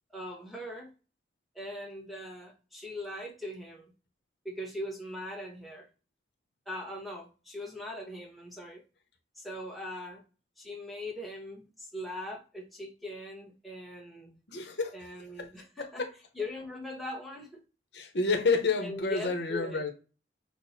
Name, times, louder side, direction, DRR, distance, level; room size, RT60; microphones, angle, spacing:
voice 1, 0.1-0.9 1.5-3.9 4.4-5.9 6.7-8.8 9.4-10.2 10.6-14.4 14.9-16.0 16.3-17.6 18.8-19.8, left 1 dB, ahead, 1.0 m, -40 dB
voice 2, 14.5-14.9 15.8-16.1 17.9-19.9, left 4 dB, 75° left, 0.9 m, -29 dB
6.1 x 2.1 x 4.1 m
head